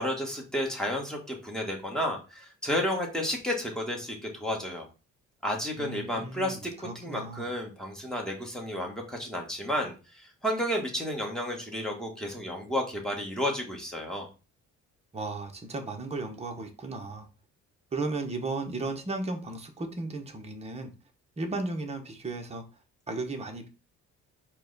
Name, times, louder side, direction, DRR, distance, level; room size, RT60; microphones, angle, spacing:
voice 1, 0.0-4.9 5.4-14.3, equal, ahead, 1.3 m, -32 dB
voice 2, 5.8-7.5 15.1-17.3 17.9-20.9 21.4-22.6 23.1-23.7, right 3 dB, 20° right, 0.8 m, -35 dB
4.5 x 2.3 x 3.9 m
cardioid pair, 90°, 30 cm